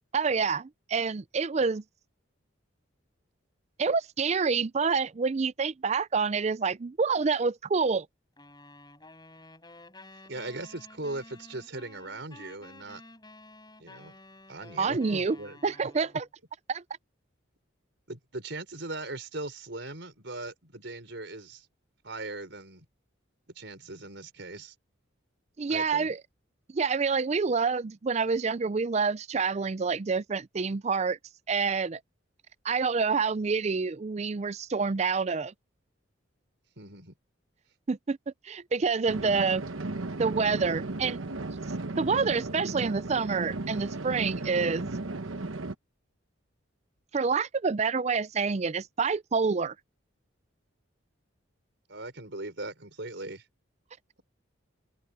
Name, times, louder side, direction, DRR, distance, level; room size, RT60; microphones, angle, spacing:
voice 1, 0.1-1.8 3.8-8.1 14.8-15.4 15.6-16.2 16.7-16.8 25.6-26.2 26.7-31.2 31.5-32.0 32.6-35.5 37.9-38.2 38.4-39.6 40.2-41.2 42.0-44.9 47.1-49.7, right 5 dB, 35° right, 0.4 m, -27 dB
sound 1, 8.4-16.3, left 2 dB, 20° left, 5.4 m, -52 dB
voice 2, 10.3-13.0 13.8-14.2 14.5-15.6 18.1-21.7 22.0-22.9 23.6-24.7 25.7-26.1 36.8-37.1 51.9-53.4, right 2 dB, 60° right, 5.2 m, -39 dB
sound 2, 39.1-45.7, right 2 dB, 80° right, 1.1 m, -35 dB
open air
head